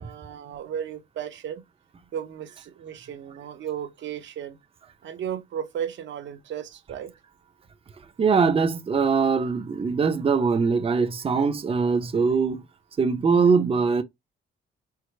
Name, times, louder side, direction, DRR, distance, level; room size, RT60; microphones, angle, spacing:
voice 1, 0.0-1.6 2.1-4.6 5.0-7.1, right 9 dB, 70° right, 0.8 m, -34 dB
voice 2, 8.2-12.6 13.0-14.0, right 5 dB, 30° right, 0.6 m, -22 dB
4.5 x 2.1 x 3.2 m
cardioid pair, 90°, 20 cm